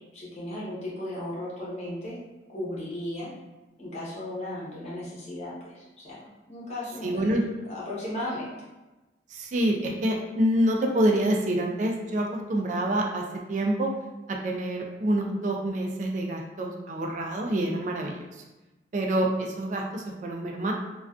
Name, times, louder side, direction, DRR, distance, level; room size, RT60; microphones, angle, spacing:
voice 1, 0.1-2.2 2.5-3.3 3.8-6.2 6.5-7.4 7.6-8.5, left 1 dB, 35° left, -6 dB, 0.7 m, -35 dB
voice 2, 7.0-7.4 9.3-13.9 14.3-18.4 18.9-20.7, right 1 dB, 40° right, 1 dB, 0.3 m, -27 dB
2.3 x 2.3 x 2.4 m, 1.1 s
head